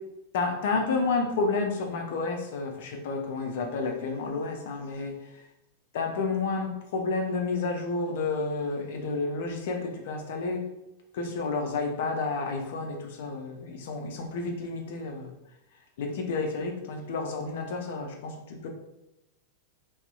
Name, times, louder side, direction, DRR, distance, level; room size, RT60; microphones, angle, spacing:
voice 1, 0.3-5.2 5.9-10.6 11.1-15.3 16.0-18.7, left 3 dB, 55° left, 3 dB, 0.4 m, -30 dB
2.5 x 2.0 x 2.4 m, 0.89 s
figure-of-eight pair, 90°, 0 cm